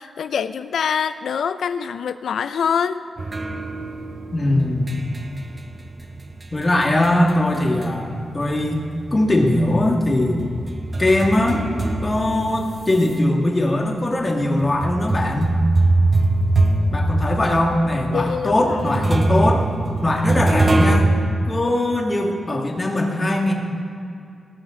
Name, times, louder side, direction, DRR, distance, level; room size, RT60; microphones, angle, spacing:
voice 1, 0.0-3.0 18.1-19.2, left 7 dB, 90° left, 12 dB, 0.4 m, -25 dB
sound 1, 3.2-8.2 8.5-13.1 13.7-13.8 14.6-21.0, right 2 dB, 30° right, 0.9 m, -23 dB
voice 2, 4.3-5.0 6.5-8.8 9.1-10.4 11.0-11.7 12.0-15.6 16.9-19.7 20.0-21.1 21.5-23.5, left 1 dB, 25° left, 0 dB, 1.8 m, -20 dB
18.5 x 13.0 x 3.8 m, 2.6 s
wide cardioid pair, 140°, 0 cm